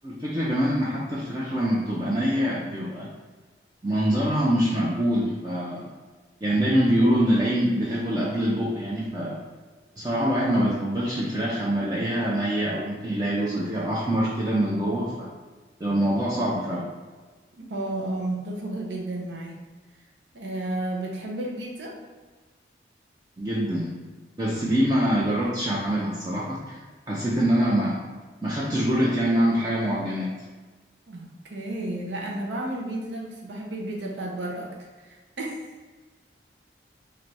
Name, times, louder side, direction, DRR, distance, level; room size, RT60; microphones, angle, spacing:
voice 1, 0.0-3.1 3.8-5.9 6.4-9.4 10.0-15.3 15.8-16.9 23.4-23.9 24.4-26.8 27.1-28.0 28.4-30.3, equal, 20° right, -6 dB, 0.4 m, -24 dB
voice 2, 17.6-19.6 20.3-22.0 31.1-34.7 35.0-35.7, right 1 dB, 85° right, -1 dB, 0.8 m, -32 dB
3.2 x 2.6 x 4.1 m, 1.4 s
head